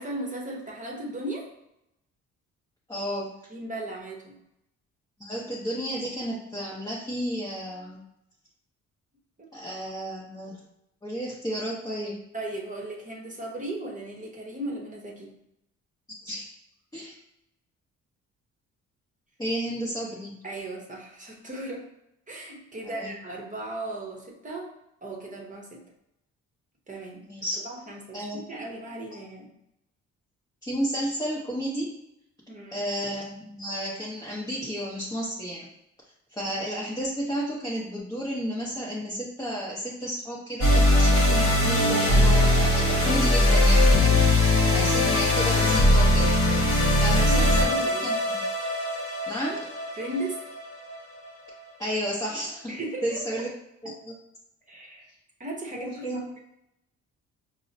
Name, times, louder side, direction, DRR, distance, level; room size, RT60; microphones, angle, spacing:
voice 1, 0.0-1.5 3.5-4.4 9.4-9.5 12.3-15.4 20.4-21.9 22.3-24.7 25.0-25.8 26.9-27.2 27.5-29.5 32.5-32.8 46.9-48.1 50.0-50.4 52.7-53.4 54.7-55.1 55.4-56.4, right 1 dB, 25° right, -1 dB, 0.8 m, -36 dB
voice 2, 2.9-3.3 5.2-8.0 9.5-10.6 11.0-12.2 16.2-16.4 16.9-17.2 19.4-20.4 22.8-23.1 27.2-27.6 28.1-28.4 30.6-31.9 32.7-35.7 36.3-46.3 47.0-47.8 48.0-48.4 49.3-49.6 51.8-52.6 53.0-53.5 53.8-54.1 55.7-56.2, equal, 15° left, -6 dB, 0.8 m, -32 dB
sound 1, 40.6-51.0, left 1 dB, 45° left, 1.1 m, -21 dB
4.6 x 2.0 x 2.7 m, 0.81 s
cardioid pair, 90°, 30 cm